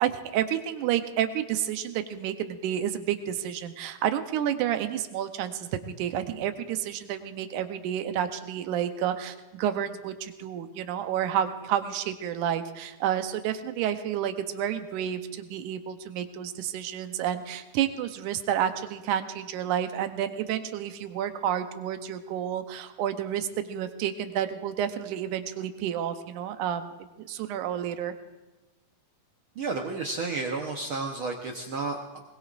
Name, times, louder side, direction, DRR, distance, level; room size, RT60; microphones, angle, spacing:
voice 1, 0.0-26.9 27.2-28.1, right 10 dB, 85° right, 8 dB, 2.3 m, -30 dB
voice 2, 29.5-32.2, right 3 dB, 65° right, 1 dB, 1.3 m, -32 dB
21.5 x 20.5 x 2.5 m, 1.1 s
omnidirectional pair, 3.5 m